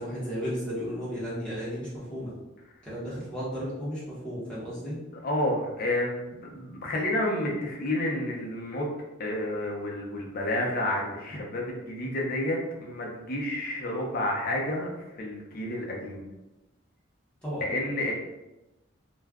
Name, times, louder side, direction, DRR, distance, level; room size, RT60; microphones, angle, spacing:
voice 1, 0.0-2.3 2.8-5.0 17.4-17.6, equal, 5° left, -10 dB, 0.9 m, -34 dB
voice 2, 5.1-8.9 9.2-16.2 17.6-18.1, left 1 dB, 50° left, -1 dB, 0.6 m, -30 dB
2.4 x 2.2 x 3.5 m, 0.99 s
head